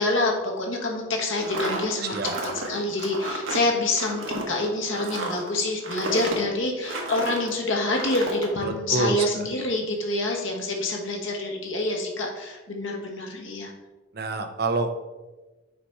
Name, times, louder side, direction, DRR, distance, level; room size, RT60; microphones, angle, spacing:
voice 1, 0.0-2.1 2.7-13.7, left 2 dB, 80° left, 0 dB, 1.3 m, -27 dB
sound 1, 1.3-7.5 7.9-8.5, right 2 dB, 80° right, 1.2 m, -32 dB
voice 2, 2.0-2.4 8.6-9.5 14.1-14.9, right 2 dB, 50° right, 7 dB, 0.6 m, -27 dB
5.9 x 4.2 x 4.5 m, 1.1 s
head